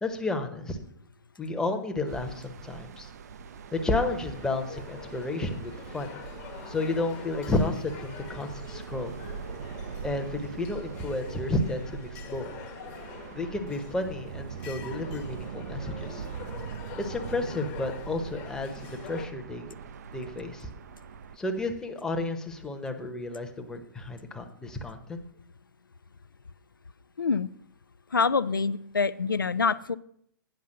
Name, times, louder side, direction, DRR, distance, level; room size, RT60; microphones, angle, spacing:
voice 1, 0.0-0.8 1.4-3.1 3.7-6.1 6.7-9.2 10.0-12.5 13.3-16.2 17.0-19.6 20.1-20.7 21.4-25.2, left 2 dB, 5° left, 4 dB, 0.9 m, -32 dB
sound 1, 2.1-21.4, right 7 dB, 50° right, 0.5 m, -42 dB
sound 2, 4.2-19.3, left 8 dB, 30° left, 1.1 m, -45 dB
voice 2, 27.2-27.5 28.1-29.9, left 5 dB, 80° left, 15 dB, 0.4 m, -26 dB
9.1 x 5.5 x 6.5 m, 0.69 s
figure-of-eight pair, 115°, 11 cm